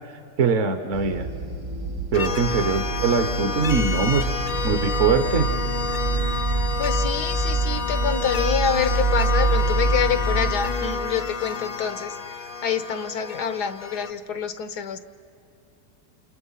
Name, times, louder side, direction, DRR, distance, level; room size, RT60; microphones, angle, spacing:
voice 1, 0.4-1.3 2.1-4.3 4.6-5.5, right 5 dB, 50° right, 7 dB, 1.3 m, -22 dB
sound 1, 0.9-10.5, right 3 dB, 80° right, 5.5 m, -26 dB
sound 2, 2.1-14.1, left 5 dB, 40° left, 0.7 m, -29 dB
voice 2, 6.8-15.0, left 8 dB, 75° left, 11 dB, 1.6 m, -27 dB
29.0 x 28.0 x 5.7 m, 2.6 s
omnidirectional pair, 1.7 m